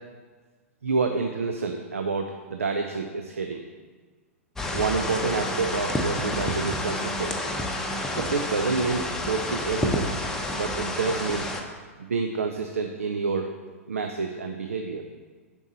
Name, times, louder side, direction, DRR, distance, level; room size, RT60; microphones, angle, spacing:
voice 1, 0.8-3.6 4.7-7.5 8.2-10.1 10.6-11.5 12.1-13.5 13.9-15.0, right 4 dB, 70° right, 5 dB, 0.5 m, -28 dB
sound 1, 4.5-11.6, left 1 dB, 5° left, 0.7 m, -29 dB
7.2 x 6.1 x 4.0 m, 1.5 s
figure-of-eight pair, 105°, 8 cm